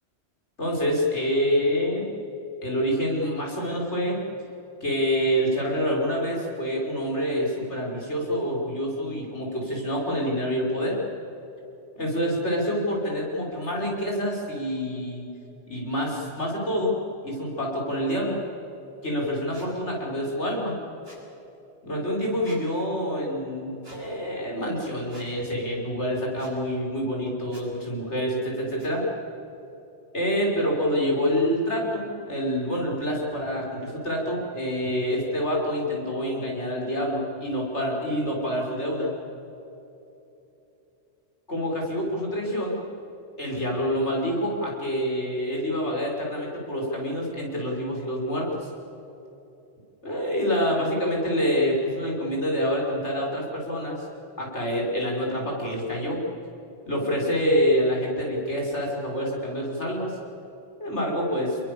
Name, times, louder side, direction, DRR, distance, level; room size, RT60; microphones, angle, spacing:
voice 1, 0.6-2.1 2.6-4.2 4.8-11.0 12.0-15.2 15.7-17.0 17.2-18.4 19.0-20.8 21.8-29.0 30.1-39.1 41.5-42.8 43.4-48.7 50.0-54.0 54.4-56.2 56.9-60.2 60.8-61.6, equal, 85° left, -2 dB, 6.6 m, -27 dB
sound 1, 19.5-19.7 21.0-21.2 22.4-22.6 23.8-24.0 25.1-25.3 26.4-26.5 27.5-27.6 28.8-28.9, right 1 dB, 60° right, 7.3 m, -48 dB
29.5 x 22.0 x 7.1 m, 2.9 s
omnidirectional pair, 1.2 m